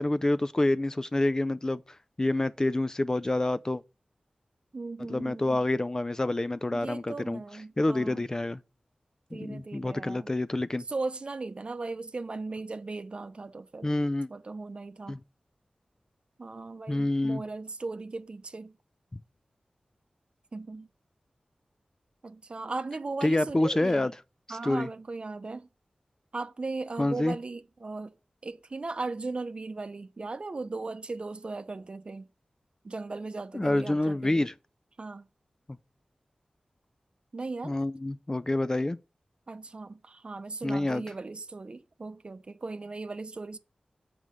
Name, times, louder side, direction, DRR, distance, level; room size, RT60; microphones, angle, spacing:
voice 1, 0.0-3.8 5.0-7.4 7.8-8.6 9.3-10.8 13.8-14.3 15.1-15.2 16.9-17.4 23.2-24.1 24.5-24.9 27.0-27.4 33.5-34.5 35.7-35.8 37.6-39.0 40.6-41.0, left 2 dB, 25° left, 0.4 m, -27 dB
voice 2, 4.7-5.6 6.7-8.3 9.3-10.3 10.9-13.9 14.3-15.2 16.4-18.7 20.5-20.9 22.2-24.1 24.5-25.7 26.3-28.1 28.4-32.3 32.8-34.5 35.0-35.3 37.3-37.7 39.5-43.6, right 3 dB, 45° right, 0.7 m, -37 dB
7.4 x 4.7 x 6.3 m
wide cardioid pair, 100°, 3 cm